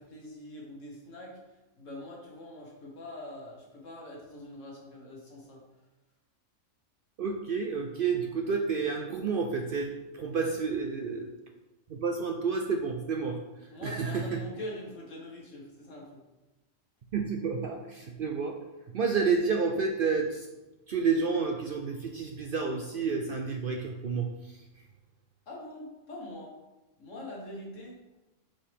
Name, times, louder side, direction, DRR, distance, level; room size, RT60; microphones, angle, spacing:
voice 1, 0.0-5.6 10.4-10.5 13.7-16.2 25.5-26.5 27.0-28.0, left 1 dB, 70° left, -3 dB, 2.0 m, -44 dB
voice 2, 7.2-11.3 11.9-13.4 13.8-14.4 17.1-18.6 18.9-20.5 20.9-24.6, right 5 dB, 60° right, 3 dB, 0.6 m, -30 dB
7.5 x 4.7 x 3.5 m, 1.0 s
omnidirectional pair, 1.4 m